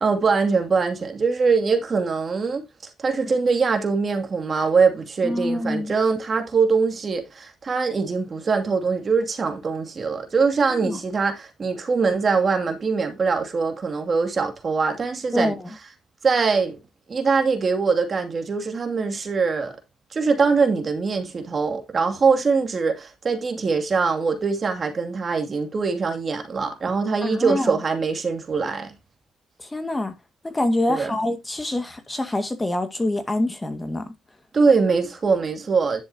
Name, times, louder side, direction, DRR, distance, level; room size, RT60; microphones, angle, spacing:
voice 1, 0.0-2.6 3.0-15.5 16.2-16.8 17.1-19.8 20.1-28.9 30.9-31.1 34.5-36.0, right 4 dB, 40° right, 2.4 m, -22 dB
voice 2, 5.2-5.9 10.7-11.0 15.3-15.7 27.2-27.8 29.6-30.1 30.4-34.1, left 1 dB, 15° left, 1.8 m, -25 dB
11.0 x 7.0 x 2.8 m
cardioid pair, 90°, 0 cm